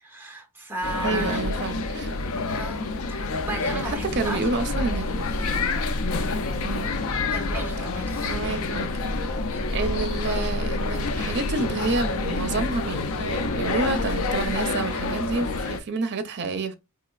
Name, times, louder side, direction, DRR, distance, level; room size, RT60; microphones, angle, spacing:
voice 1, 0.0-1.4 2.5-4.4 7.3-8.2, right 1 dB, 10° right, 0.8 m, -34 dB
sound 1, 0.8-15.8, left 3 dB, 70° left, 0.5 m, -28 dB
voice 2, 1.0-2.2 3.7-5.3 5.6-5.7 6.6-6.9 8.3-9.0 9.7-16.8, right 3 dB, 50° right, 0.6 m, -29 dB
sound 2, 3.8-14.6, equal, 25° right, 1.2 m, -33 dB
4.1 x 2.9 x 2.3 m
head